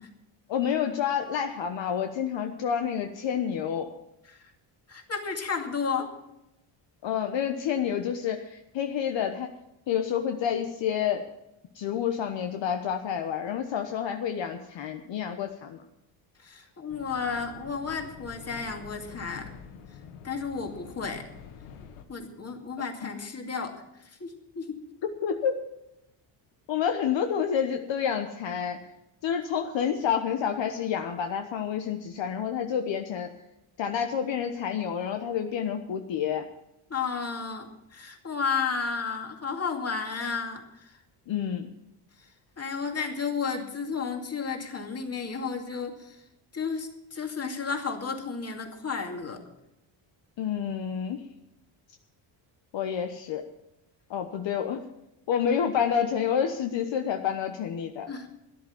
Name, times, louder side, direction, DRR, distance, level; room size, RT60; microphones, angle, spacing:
voice 1, 0.5-3.9 7.0-9.5 9.9-11.2 11.7-15.8 25.2-25.5 26.7-28.8 29.2-33.3 33.8-36.4 41.3-41.7 50.4-51.2 52.7-53.4 54.1-54.8 55.3-58.1, left 8 dB, 60° left, 5 dB, 1.2 m, -29 dB
voice 2, 4.9-6.1 16.4-19.5 20.2-21.2 22.1-23.8 24.2-24.8 36.9-41.0 42.6-46.2 46.5-49.4 58.1-58.3, left 5 dB, 30° left, 4 dB, 2.4 m, -32 dB
sound 1, 16.9-22.0, left 7 dB, 90° left, 1.6 m, -47 dB
13.0 x 11.0 x 7.2 m, 0.87 s
cardioid pair, 115°, 49 cm